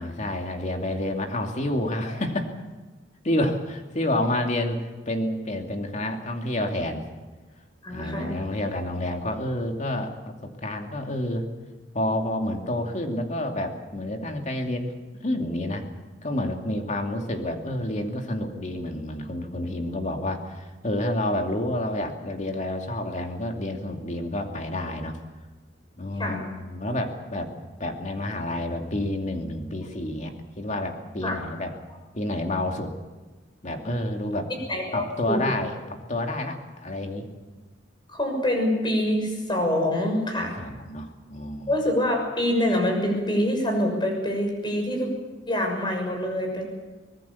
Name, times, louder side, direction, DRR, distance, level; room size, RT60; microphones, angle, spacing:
voice 1, 0.0-2.5 3.2-4.8 5.1-7.0 7.9-11.5 11.9-14.9 15.2-15.9 16.2-25.2 26.0-27.5 27.8-31.7 32.1-32.9 33.6-34.5 34.9-37.3 40.4-41.7, left 1 dB, 40° left, 3 dB, 2.6 m, -29 dB
voice 2, 7.8-8.4 26.2-26.4 31.2-31.4 34.7-35.4 38.1-40.5 41.7-45.1 45.5-46.7, left 1 dB, 25° left, 2 dB, 6.3 m, -25 dB
24.5 x 19.5 x 7.1 m, 1.3 s
head